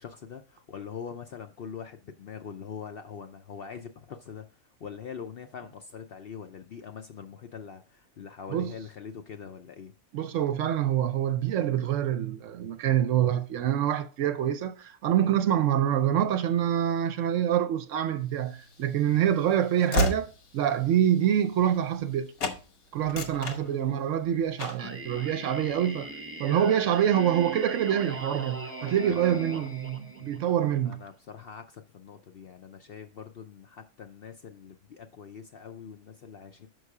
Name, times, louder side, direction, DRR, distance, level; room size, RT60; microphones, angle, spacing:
voice 1, 0.0-9.9 29.0-29.7 30.2-30.6 30.8-36.7, left 7 dB, 60° left, 0.6 m, -43 dB
voice 2, 10.1-22.3 22.9-26.1 26.4-31.0, right 10 dB, 70° right, 0.9 m, -26 dB
Train / Slam, 18.5-22.1 22.4-22.6 23.0-24.2 24.6-24.9, left 1 dB, 80° left, 1.5 m, -32 dB
Singing, 24.8-30.7, right 2 dB, 10° right, 0.7 m, -40 dB
6.4 x 5.5 x 4.7 m
omnidirectional pair, 1.5 m